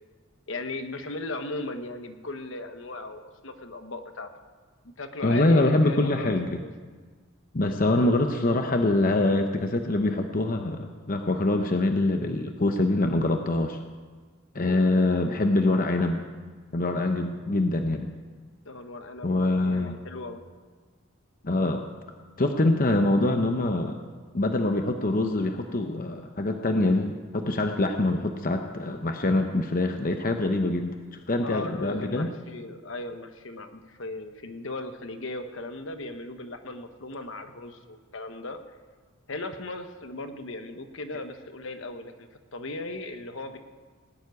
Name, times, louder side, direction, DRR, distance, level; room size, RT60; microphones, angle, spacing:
voice 1, 0.5-4.3 4.8-6.7 18.6-20.4 31.4-38.6 39.3-43.6, left 2 dB, 65° left, 8 dB, 1.1 m, -37 dB
voice 2, 5.2-6.6 7.5-13.8 14.5-16.2 16.7-18.1 19.2-20.0 21.4-21.8 22.4-24.0 24.3-30.9 31.3-32.3, left 2 dB, 40° left, 5 dB, 0.8 m, -24 dB
18.0 x 7.3 x 9.4 m, 1.5 s
head